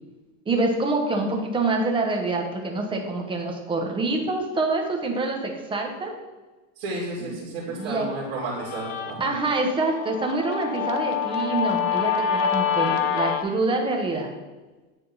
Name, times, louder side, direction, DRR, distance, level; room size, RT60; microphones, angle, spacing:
voice 1, 0.5-6.1 7.2-8.1 9.2-14.3, right 2 dB, 15° right, 2 dB, 0.9 m, -26 dB
voice 2, 6.8-9.3, right 2 dB, 65° right, -5 dB, 2.4 m, -32 dB
Guitar, 7.9-13.4, left 7 dB, 75° left, 1.0 m, -27 dB
9.5 x 3.7 x 3.9 m, 1.2 s
supercardioid pair, 140°, 39 cm